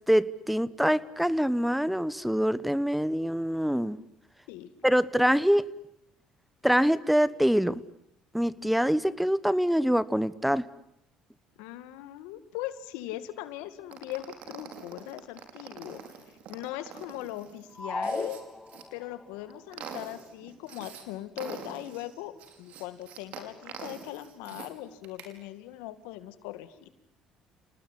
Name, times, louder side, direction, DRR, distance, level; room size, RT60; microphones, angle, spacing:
voice 1, 0.1-4.0 4.8-5.7 6.6-7.8 8.3-10.6, equal, ahead, 18 dB, 1.2 m, -25 dB
voice 2, 11.6-16.0 16.5-18.4 18.9-22.3 22.6-26.9, left 14 dB, 90° left, 12 dB, 2.2 m, -40 dB
sound 1, 13.9-18.8 19.3-21.0 21.4-24.7 25.0-25.3, right 7 dB, 70° right, 5.3 m, -45 dB
sound 2, 17.8-19.2, left 2 dB, 15° left, 2.5 m, -35 dB
30.0 x 19.0 x 9.9 m, 0.78 s
supercardioid pair, 85°, 2 cm